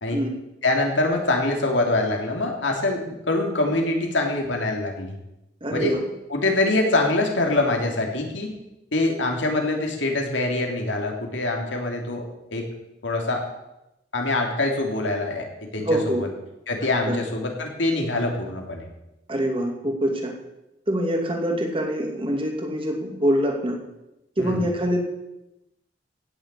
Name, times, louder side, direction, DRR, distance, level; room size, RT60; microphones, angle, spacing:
voice 1, 0.6-5.2 5.7-6.0 6.3-8.5 8.9-12.2 12.5-12.7 13.0-13.4 14.1-15.5 15.7-16.3 16.7-18.8 24.4-24.7, left 2 dB, 85° left, 2 dB, 3.2 m, -24 dB
voice 2, 5.6-6.0 15.9-16.2 17.1-17.2 19.3-20.3 20.9-23.8 24.4-25.0, equal, 30° right, 2 dB, 2.7 m, -24 dB
16.5 x 7.3 x 8.5 m, 0.92 s
head